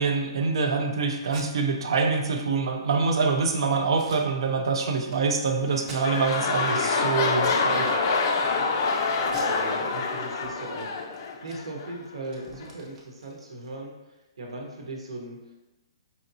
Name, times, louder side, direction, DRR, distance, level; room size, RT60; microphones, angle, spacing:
voice 1, 0.0-7.9, right 4 dB, 65° right, 4 dB, 0.5 m, -25 dB
Packing tape duct tape, 1.2-1.5 1.9-2.0 2.3-2.4 2.9-3.2 3.9-4.7 5.1-5.2 5.8-6.4 6.8-7.0 7.4-7.7 8.0-8.6 9.2-10.4 10.7-10.8 11.1-13.7, right 2 dB, 15° right, 0.5 m, -46 dB
sound 1, 5.6-11.9 12.6-12.7, left 4 dB, 40° left, 0.4 m, -26 dB
voice 2, 9.2-15.6, right 2 dB, 90° right, 0 dB, 1.0 m, -39 dB
5.0 x 2.8 x 2.6 m, 1.0 s
hypercardioid pair, 160°, 3 cm